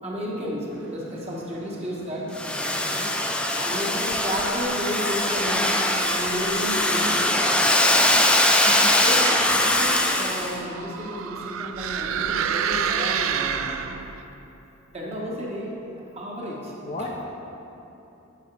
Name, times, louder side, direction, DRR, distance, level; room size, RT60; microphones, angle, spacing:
voice 1, 0.0-2.3 3.5-5.7 6.1-8.2 9.0-13.7 14.9-15.7 16.1-16.7 17.0-17.1, equal, 30° right, -4 dB, 1.4 m, -32 dB
sound 1, 0.7-10.8, right 3 dB, 60° right, 0.8 m, -38 dB
Domestic sounds home sounds, 2.3-10.6, left 1 dB, 5° left, 0.4 m, -22 dB
voice 2, 8.6-9.5 16.8-17.1, left 2 dB, 35° left, -1 dB, 0.7 m, -35 dB
sound 2, 9.8-14.2, right 7 dB, 80° right, 0.4 m, -28 dB
8.2 x 8.1 x 3.4 m, 3.0 s
head